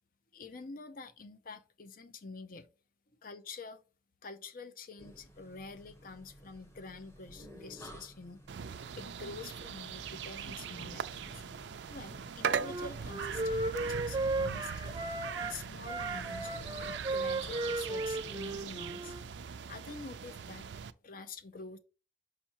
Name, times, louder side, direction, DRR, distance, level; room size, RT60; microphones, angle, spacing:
voice 1, 0.3-2.7 3.2-3.8 4.2-8.4 8.7-11.4 11.9-15.0 15.4-16.5 16.8-19.1 19.7-20.7 21.0-21.8, left 4 dB, 55° left, 0.6 m, -47 dB
sound 1, 5.0-18.7, equal, 15° left, 1.0 m, -54 dB
sound 2, 8.5-20.9, right 7 dB, 85° right, 0.4 m, -40 dB
Wind instrument woodwind instrument, 12.6-15.5 15.8-19.2, right 2 dB, 25° right, 0.5 m, -35 dB
5.8 x 5.5 x 2.9 m
head